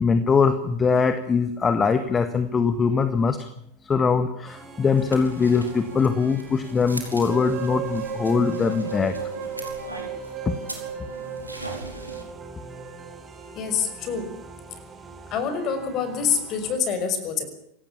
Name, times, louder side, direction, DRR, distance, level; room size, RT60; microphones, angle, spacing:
voice 1, 0.0-3.5 3.8-9.2 10.4-10.6, left 5 dB, 20° left, 10 dB, 1.6 m, -22 dB
sound 1, 4.4-16.7, right 3 dB, 20° right, 4.3 m, -45 dB
sound 2, 5.0-12.2, right 1 dB, 85° right, 5.0 m, -40 dB
sound 3, 7.3-13.3, right 7 dB, 40° right, 4.4 m, -35 dB
voice 2, 13.6-14.3 15.3-17.4, left 6 dB, 35° left, 10 dB, 5.9 m, -26 dB
27.0 x 18.5 x 7.3 m, 0.73 s
figure-of-eight pair, 90°, 0 cm